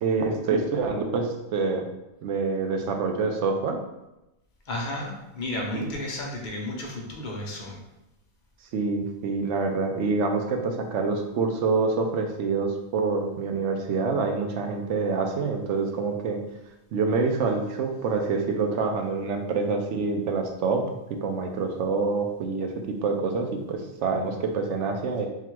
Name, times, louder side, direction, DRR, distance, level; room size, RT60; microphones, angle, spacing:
voice 1, 0.0-1.8 2.2-3.8 5.7-5.9 8.7-16.4 16.9-20.8 21.2-25.3, right 4 dB, 65° right, 4 dB, 0.8 m, -26 dB
voice 2, 4.7-7.8, left 1 dB, 45° left, -1 dB, 0.6 m, -33 dB
3.7 x 2.3 x 4.5 m, 0.94 s
omnidirectional pair, 1.5 m